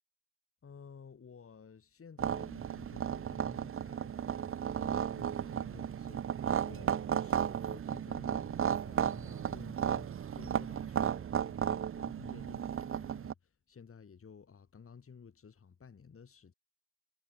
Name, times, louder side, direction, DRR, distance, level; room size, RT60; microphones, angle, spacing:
voice 1, 0.6-16.5, left 6 dB, 35° left, 2.6 m, -54 dB
sound 1, 2.2-13.3, right 8 dB, 35° right, 0.6 m, -34 dB
cardioid pair, 100°, 36 cm